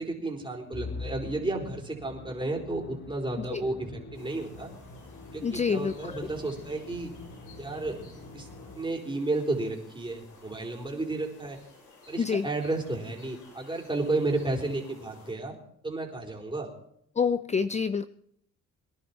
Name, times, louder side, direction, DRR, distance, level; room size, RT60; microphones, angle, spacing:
voice 1, 0.0-4.7 5.3-7.1 7.6-8.0 8.3-8.5 8.7-11.6 12.1-15.6 15.8-16.7, right 2 dB, 15° right, 1 dB, 4.1 m, -32 dB
Musical instrument, 0.7-9.2, left 2 dB, 40° left, 2.4 m, -44 dB
sound 1, 4.1-15.3, left 3 dB, 80° left, 6.9 m, -55 dB
voice 2, 5.4-6.3 12.2-12.5 17.2-18.1, left 6 dB, 25° left, 14 dB, 0.5 m, -27 dB
22.5 x 11.0 x 4.4 m, 0.69 s
cardioid pair, 90°, 30 cm